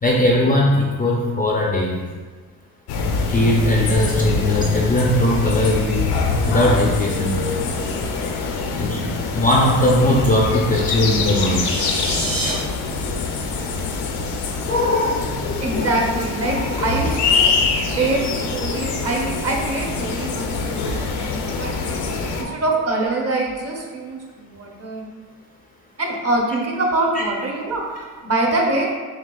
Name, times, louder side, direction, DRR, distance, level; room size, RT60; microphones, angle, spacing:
voice 1, 0.0-2.0 3.3-6.0 6.5-7.4 8.8-11.6 14.6-15.9 16.5-16.9 18.7-18.8 21.5-21.8 22.3-22.6 27.1-27.2, left 1 dB, 20° left, -3 dB, 0.4 m, -20 dB
sound 1, 2.9-22.4, left 4 dB, 70° left, 0.6 m, -24 dB
sound 2, 11.0-12.5, right 2 dB, 65° right, 1.2 m, -28 dB
voice 2, 15.6-17.5 17.9-22.0 22.3-25.1 26.0-28.9, right 2 dB, 35° right, 0 dB, 0.8 m, -24 dB
6.1 x 2.3 x 2.3 m, 1.5 s
cardioid pair, 100°, 42 cm